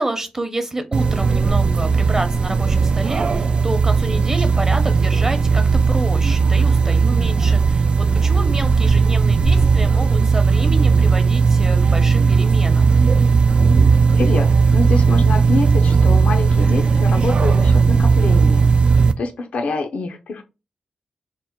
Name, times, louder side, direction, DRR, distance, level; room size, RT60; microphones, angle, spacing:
voice 1, 0.0-13.0, right 1 dB, 25° right, 7 dB, 0.8 m, -28 dB
sound 1, 0.9-19.1, right 5 dB, 55° right, 0.3 m, -16 dB
voice 2, 13.8-20.4, left 3 dB, 80° left, 6 dB, 0.5 m, -26 dB
3.6 x 2.1 x 4.3 m, 0.28 s
cardioid pair, 70°, 2 cm